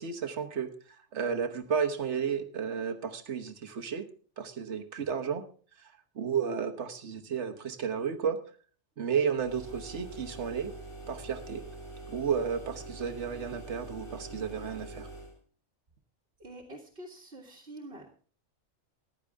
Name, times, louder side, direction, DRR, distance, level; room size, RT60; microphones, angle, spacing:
voice 1, 0.0-4.0 4.4-5.4 5.8-8.4 9.0-10.7 11.1-11.6 12.1-15.1, right 7 dB, 75° right, 6 dB, 1.5 m, -33 dB
sound 1, 9.4-15.4, right 2 dB, 25° left, 7.4 m, -45 dB
voice 2, 16.4-18.1, right 1 dB, 55° right, -2 dB, 2.0 m, -46 dB
15.0 x 11.0 x 3.5 m, 0.42 s
omnidirectional pair, 1.2 m